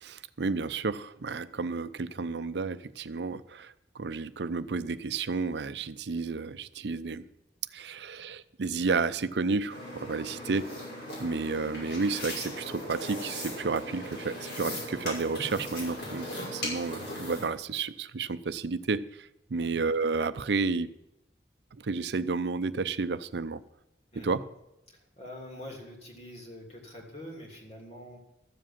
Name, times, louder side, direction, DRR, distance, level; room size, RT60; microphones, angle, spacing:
voice 1, 0.0-7.3 7.7-10.6 11.2-16.3 16.5-20.9 21.7-23.6 24.2-24.4, right 4 dB, 80° right, 13 dB, 0.6 m, -31 dB
sound 1, 9.7-17.4, left 1 dB, 75° left, 6.0 m, -38 dB
voice 2, 10.2-10.6 15.9-16.2 19.5-19.8 24.1-24.4 24.9-28.2, left 1 dB, 35° left, 0 dB, 3.0 m, -46 dB
13.5 x 7.6 x 7.3 m, 0.90 s
head